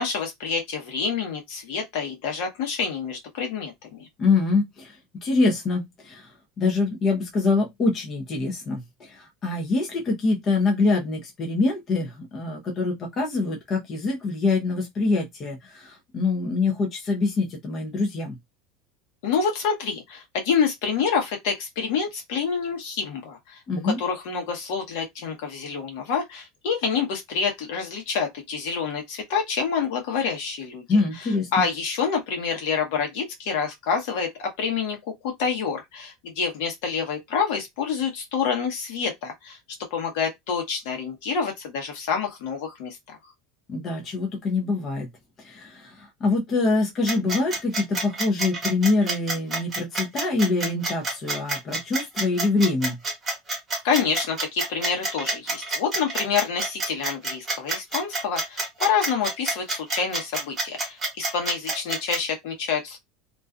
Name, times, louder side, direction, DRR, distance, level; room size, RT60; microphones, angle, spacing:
voice 1, 0.0-4.1 19.2-35.0 35.2-39.6 39.9-43.2 53.8-63.0, left 6 dB, 65° left, 0.9 m, -27 dB
voice 2, 4.2-5.0 5.2-6.3 6.6-18.4 23.7-24.0 30.9-31.6 43.7-45.1 45.4-53.0, left 3 dB, 25° left, 0.5 m, -25 dB
sound 1, 47.1-62.2, right 2 dB, 15° right, 1.0 m, -28 dB
2.4 x 2.2 x 2.4 m
supercardioid pair, 165°, 0 cm